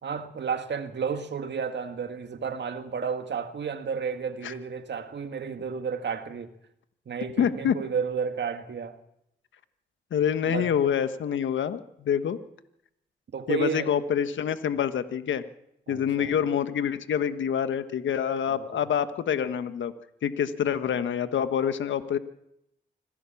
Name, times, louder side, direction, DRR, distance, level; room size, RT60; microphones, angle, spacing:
voice 1, 0.0-6.5 7.1-9.0 10.5-10.7 13.3-14.0 15.9-16.4 18.5-18.8, right 6 dB, 60° right, 2.1 m, -32 dB
voice 2, 7.4-7.7 10.1-12.4 13.5-15.4 15.9-19.9 20.2-22.2, left 8 dB, 75° left, 1.4 m, -26 dB
25.5 x 17.0 x 7.2 m
supercardioid pair, 40°, 20 cm